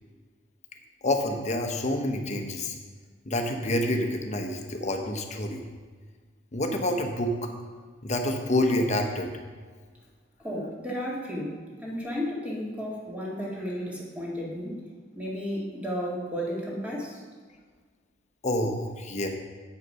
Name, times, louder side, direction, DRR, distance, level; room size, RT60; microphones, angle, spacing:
voice 1, 1.0-2.8 3.3-5.6 6.5-7.5 8.0-9.3 18.4-19.3, left 1 dB, 40° left, 4 dB, 1.0 m, -27 dB
voice 2, 10.4-14.7 15.2-17.2, equal, 10° right, -4 dB, 1.9 m, -33 dB
8.2 x 6.5 x 5.5 m, 1.5 s
head